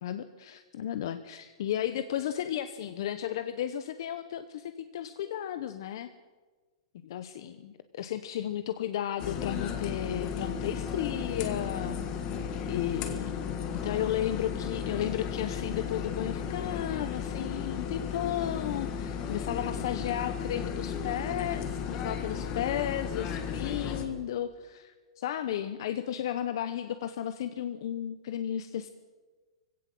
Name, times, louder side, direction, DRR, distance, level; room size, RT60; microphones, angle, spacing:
voice 1, 0.0-6.1 7.1-12.0 12.7-13.4 13.8-28.9, left 11 dB, 45° left, 11 dB, 0.9 m, -34 dB
sound 1, 9.2-24.1, left 7 dB, 20° left, 1.6 m, -34 dB
20.5 x 16.5 x 7.7 m, 1.3 s
hypercardioid pair, 175°, 3 cm